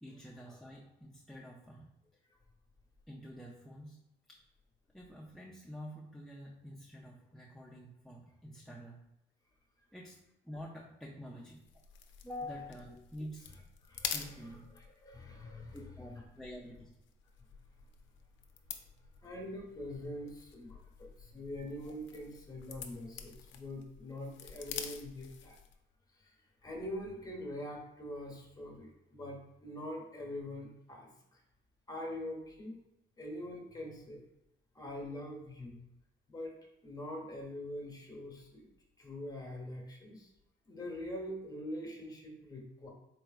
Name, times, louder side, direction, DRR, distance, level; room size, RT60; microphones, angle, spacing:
voice 1, 0.0-1.9 3.1-4.0 4.3-4.4 4.9-9.0 9.9-11.6 12.2-13.5 14.1-14.7 15.7-16.9 39.5-39.6, equal, ahead, -2 dB, 0.4 m, -48 dB
sound 1, 11.5-25.8, left 8 dB, 70° left, 0.4 m, -48 dB
voice 2, 13.8-14.5 14.8-16.1 17.4-17.6 18.8-18.9 19.2-25.6 26.1-31.4 31.9-32.8 33.2-34.2 34.7-35.8 36.3-36.6 36.8-38.6 39.0-40.3 40.7-42.9, left 1 dB, 20° left, 0 dB, 1.0 m, -44 dB
4.0 x 3.2 x 2.4 m, 0.87 s
cardioid pair, 90°, 20 cm